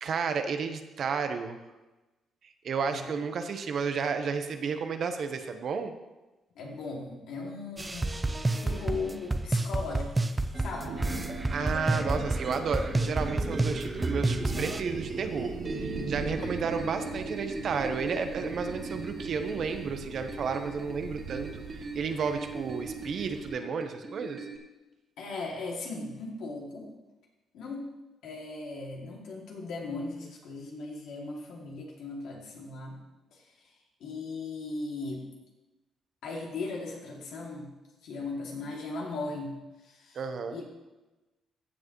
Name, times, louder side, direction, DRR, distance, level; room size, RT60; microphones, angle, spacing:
voice 1, 0.0-1.6 2.4-5.9 11.5-24.5 40.1-40.6, right 5 dB, 60° right, 7 dB, 1.0 m, -32 dB
voice 2, 6.5-8.2 8.6-10.2 10.5-11.0 16.4-16.8 25.2-26.9 27.5-27.9 28.2-33.0 33.3-33.5 34.0-35.2 36.2-37.7 38.0-40.2 40.5-40.6, left 3 dB, 80° left, -2 dB, 2.5 m, -38 dB
sound 1, 7.8-14.8, right 2 dB, 20° right, 0.6 m, -29 dB
sound 2, 10.5-24.6, right 2 dB, 40° right, 1.9 m, -39 dB
sound 3, 10.7-23.5, right 3 dB, 80° right, 2.0 m, -41 dB
14.5 x 7.4 x 3.1 m, 1.1 s
cardioid pair, 90°, 0 cm